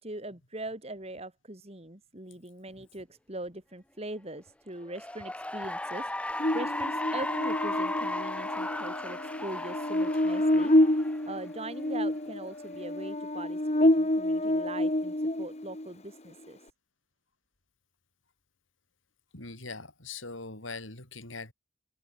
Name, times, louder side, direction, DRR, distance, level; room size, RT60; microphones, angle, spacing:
voice 1, 0.0-11.0 11.3-16.6, right 1 dB, 30° right, 3.8 m, -41 dB
Cheering / Applause, 4.8-11.5, left 1 dB, 5° left, 1.6 m, -36 dB
Buzz, 6.4-15.9, left 1 dB, 35° left, 2.0 m, -28 dB
voice 2, 19.3-21.5, left 3 dB, 85° left, 6.9 m, -41 dB
head